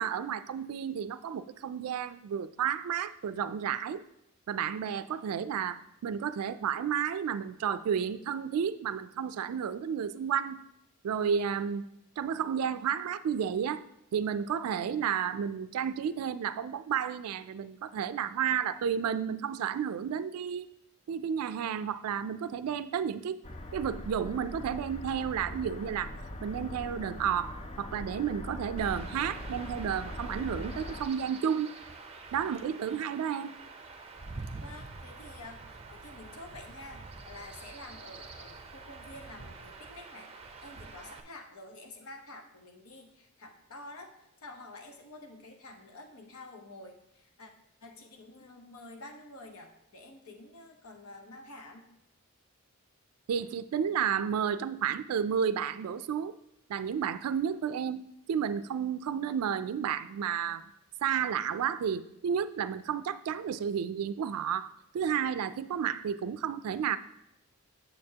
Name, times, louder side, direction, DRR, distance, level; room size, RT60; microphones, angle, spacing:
voice 1, 0.0-4.0 4.5-10.6 11.0-11.8 12.2-13.8 14.1-20.7 21.1-23.4 23.7-26.1 26.4-31.7 32.3-33.6 53.3-56.3 56.7-58.0 58.3-60.6 61.0-67.0, right 8 dB, 85° right, 13 dB, 0.3 m, -32 dB
sound 1, 23.4-31.0, left 1 dB, 30° left, 0.5 m, -41 dB
Chirp tweet / Wind / Stream, 28.8-41.2, right 3 dB, 25° right, 0.5 m, -46 dB
voice 2, 34.6-47.5 47.8-51.8, left 2 dB, 80° left, 4 dB, 0.9 m, -49 dB
8.6 x 6.8 x 2.8 m, 0.81 s
head